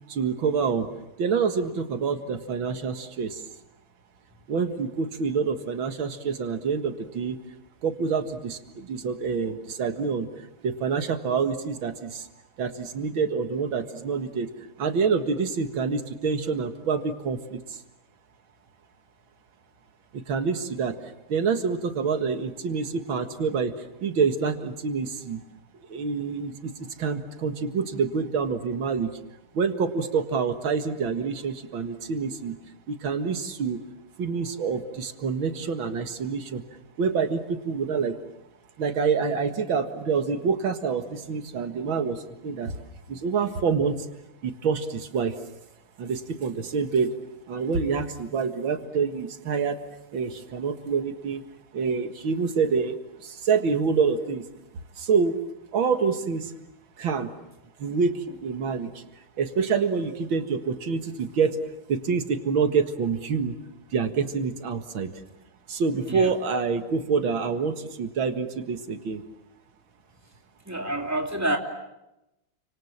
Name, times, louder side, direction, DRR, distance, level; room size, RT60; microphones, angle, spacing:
voice 1, 0.1-0.9 1.2-3.4 4.5-7.4 7.8-10.3 10.6-12.3 12.6-14.5 14.8-17.8 20.1-20.9 21.3-23.7 24.0-25.4 25.9-29.1 29.5-32.6 32.9-33.8 34.2-36.6 37.0-38.2 38.8-42.8 43.1-44.0 44.4-45.4 46.0-47.1 47.5-49.8 50.1-51.4 51.7-54.5 55.0-55.4 55.7-56.5 57.0-57.3 57.8-59.0 59.4-61.6 61.9-63.6 63.9-65.1 65.7-69.2, right 5 dB, 90° right, 8 dB, 2.5 m, -27 dB
voice 2, 70.7-71.6, right 1 dB, 10° right, 3 dB, 2.9 m, -28 dB
30.0 x 26.0 x 7.3 m, 0.93 s
omnidirectional pair, 2.1 m